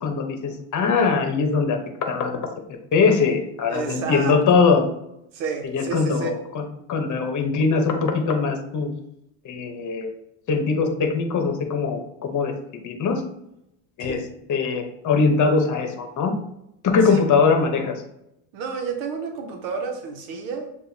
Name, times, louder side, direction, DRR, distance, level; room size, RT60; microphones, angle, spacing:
voice 1, 0.0-2.5 2.9-4.9 5.7-8.9 9.4-10.1 10.5-12.5 12.8-13.2 14.0-14.2 14.5-16.3 16.8-18.0, left 4 dB, 40° left, 5 dB, 0.9 m, -21 dB
voice 2, 3.7-4.3 5.3-6.4 14.0-14.2 17.1-17.2 18.5-20.7, right 5 dB, 90° right, 4 dB, 1.0 m, -30 dB
6.9 x 2.6 x 2.7 m, 0.80 s
cardioid pair, 115°, 47 cm